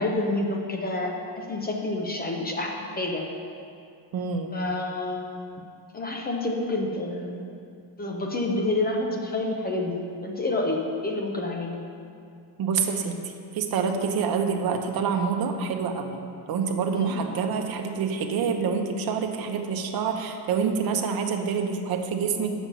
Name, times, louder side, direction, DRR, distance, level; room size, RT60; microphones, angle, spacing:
voice 1, 0.0-2.7 3.0-3.2 4.5-5.2 5.9-7.5 8.0-11.8 16.9-17.1, left 2 dB, 20° left, 0 dB, 0.7 m, -28 dB
voice 2, 4.1-4.5 12.6-13.1 13.5-16.2 16.5-22.5, right 6 dB, 55° right, 4 dB, 0.9 m, -27 dB
8.7 x 7.2 x 5.6 m, 2.4 s
cardioid pair, 175°, 44 cm